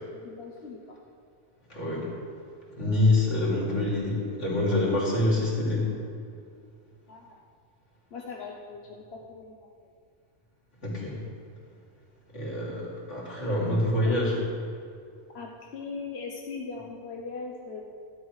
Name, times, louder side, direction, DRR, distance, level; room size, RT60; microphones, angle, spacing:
voice 1, 0.0-1.0 7.1-7.4 8.1-9.7 14.0-14.3 15.3-17.8, left 4 dB, 60° left, 0 dB, 1.2 m, -40 dB
voice 2, 1.7-2.1 2.8-5.9 10.8-11.2 12.3-14.4, left 2 dB, 75° left, -5 dB, 3.5 m, -26 dB
13.0 x 12.0 x 4.8 m, 2.3 s
omnidirectional pair, 1.2 m